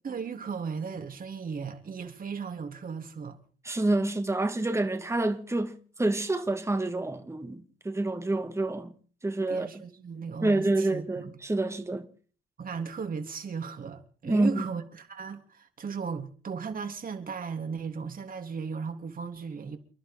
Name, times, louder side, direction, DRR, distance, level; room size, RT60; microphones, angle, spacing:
voice 1, 0.0-3.4 9.5-11.4 12.6-19.8, right 5 dB, 45° right, 3.4 m, -36 dB
voice 2, 3.6-8.9 9.2-9.8 10.4-12.1 14.2-14.7, right 2 dB, 15° right, 2.1 m, -28 dB
30.0 x 11.5 x 3.7 m
cardioid pair, 90°, 20 cm